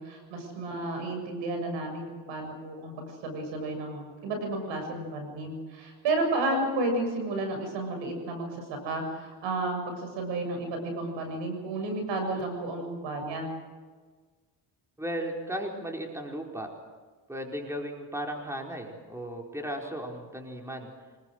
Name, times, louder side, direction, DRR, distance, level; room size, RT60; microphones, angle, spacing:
voice 1, 0.0-13.5, right 2 dB, 90° right, 4 dB, 7.3 m, -32 dB
voice 2, 15.0-16.7 17.3-20.9, equal, 5° right, 1 dB, 4.6 m, -35 dB
26.0 x 21.0 x 6.5 m, 1.4 s
cardioid pair, 95°, 43 cm